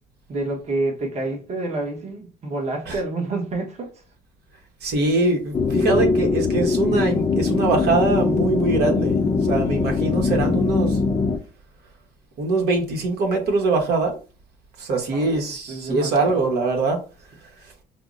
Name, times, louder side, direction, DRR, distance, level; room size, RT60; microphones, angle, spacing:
voice 1, 0.3-4.0 15.1-15.2 15.7-16.5, right 2 dB, 40° right, 1.1 m, -28 dB
voice 2, 4.8-11.0 12.4-14.2 14.8-17.0, right 3 dB, 75° right, 1.2 m, -23 dB
sound 1, 5.5-11.4, left 4 dB, 25° left, 0.5 m, -21 dB
5.4 x 2.0 x 2.5 m
cardioid pair, 110°, 17 cm